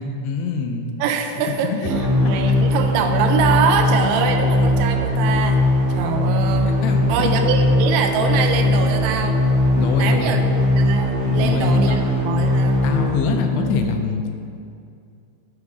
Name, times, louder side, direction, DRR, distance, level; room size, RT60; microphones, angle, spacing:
voice 1, 0.0-0.9 1.5-2.6 6.6-7.5 9.8-10.4 11.3-12.0 12.8-14.2, left 5 dB, 90° left, 4 dB, 2.7 m, -25 dB
voice 2, 1.0-1.7 2.2-5.6 6.0-6.7 7.1-9.4 10.0-10.4 10.8-12.8, right 6 dB, 85° right, 5 dB, 2.6 m, -23 dB
sound 1, 1.8-13.8, left 1 dB, 65° right, 2.3 m, -19 dB
8.5 x 4.6 x 4.9 m, 2.4 s
omnidirectional pair, 4.8 m